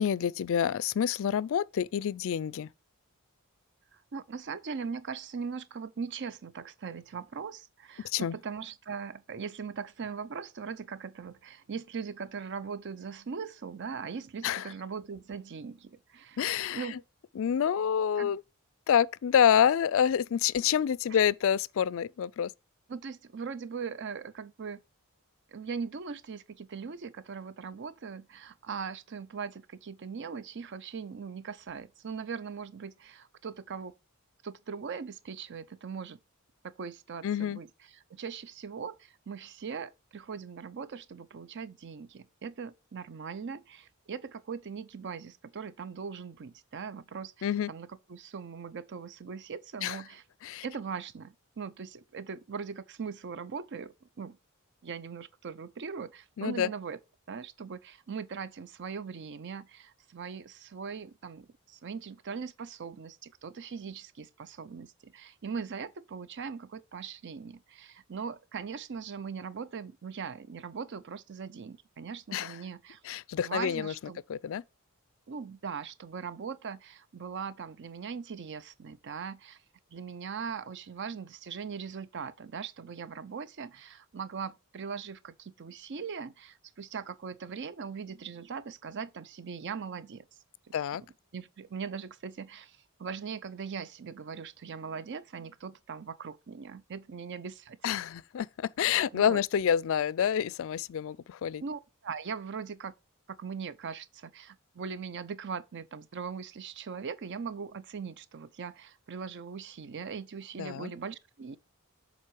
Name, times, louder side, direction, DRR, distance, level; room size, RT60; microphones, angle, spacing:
voice 1, 0.0-2.7 8.1-8.4 14.4-14.7 16.4-17.0 17.4-18.4 18.9-22.5 37.2-37.6 47.4-47.7 49.8-50.0 50.4-50.6 56.4-56.7 72.3-72.5 73.1-73.9 74.3-74.6 90.7-91.0 97.8-101.6 110.6-110.9, left 8 dB, 60° left, 0.3 m, -27 dB
voice 2, 4.1-16.4 16.7-17.0 18.2-18.3 21.1-21.2 22.9-24.8 25.5-33.9 34.4-36.2 36.6-37.7 38.1-50.2 50.6-54.4 54.8-57.0 57.3-73.0 73.4-74.2 75.3-79.6 79.9-90.3 90.7-90.8 91.3-97.8 98.9-99.4 101.6-102.9 103.3-111.6, right 6 dB, 55° right, 0.5 m, -40 dB
7.4 x 4.1 x 4.6 m
head